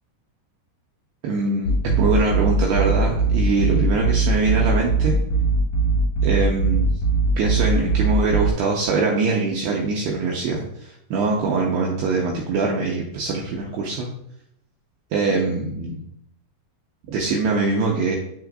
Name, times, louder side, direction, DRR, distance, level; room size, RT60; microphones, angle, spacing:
voice 1, 1.2-5.2 6.2-6.9 7.4-14.1 15.1-16.0 17.1-18.2, right 3 dB, 85° right, -2 dB, 2.3 m, -23 dB
sound 1, 1.6-8.5, right 3 dB, 65° left, 1.5 m, -21 dB
9.8 x 6.2 x 2.5 m, 0.75 s
omnidirectional pair, 5.6 m